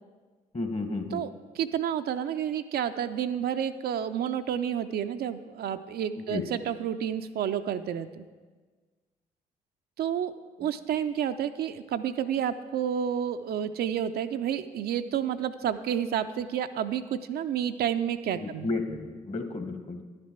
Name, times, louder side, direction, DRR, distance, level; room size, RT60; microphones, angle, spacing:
voice 1, 0.5-1.2 6.3-6.4 18.3-20.0, left 3 dB, 35° left, 7 dB, 1.2 m, -32 dB
voice 2, 1.1-8.3 10.0-10.3 10.6-18.7, right 9 dB, 55° right, 9 dB, 0.4 m, -30 dB
10.5 x 7.4 x 4.5 m, 1.4 s
hypercardioid pair, 40°, 19 cm